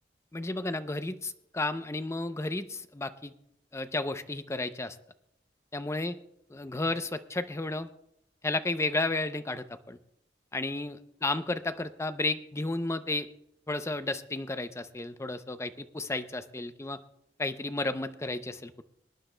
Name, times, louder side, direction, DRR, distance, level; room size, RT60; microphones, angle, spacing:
voice 1, 0.3-3.3 3.7-5.0 5.7-6.1 6.5-7.9 8.4-10.0 10.5-13.3 13.7-17.0 17.4-18.8, left 2 dB, 15° left, 11 dB, 0.5 m, -32 dB
24.5 x 10.5 x 2.2 m, 0.79 s
head